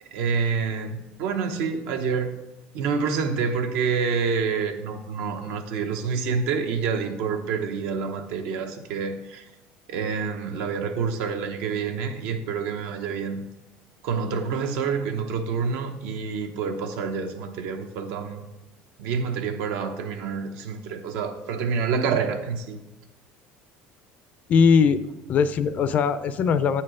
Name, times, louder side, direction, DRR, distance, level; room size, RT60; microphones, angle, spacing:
voice 1, 0.0-2.4 2.7-9.5 9.9-13.4 14.0-18.5 19.0-22.8, right 5 dB, 75° right, 0.8 m, -27 dB
voice 2, 24.5-25.0 25.3-26.8, left 6 dB, 40° left, 0.4 m, -20 dB
8.2 x 4.4 x 4.8 m
cardioid pair, 135°, 4 cm